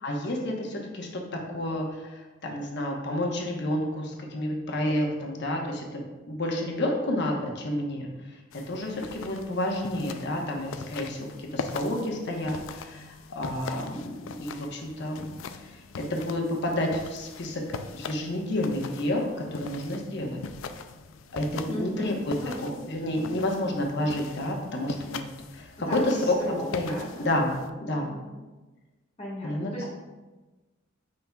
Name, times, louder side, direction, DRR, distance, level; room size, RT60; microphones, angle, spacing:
voice 1, 0.0-8.1 8.7-15.8 16.1-17.6 17.9-20.4 21.3-22.3 22.6-25.2 25.5-26.9 27.2-27.5 27.8-28.1 29.4-29.8, left 1 dB, 60° left, 1 dB, 1.1 m, -30 dB
sound 1, 8.5-27.7, left 5 dB, 75° left, 0.4 m, -42 dB
voice 2, 21.7-22.6 25.9-27.5 27.8-28.4 29.2-29.9, equal, 30° left, -6 dB, 1.6 m, -37 dB
8.0 x 5.4 x 2.3 m, 1.2 s
head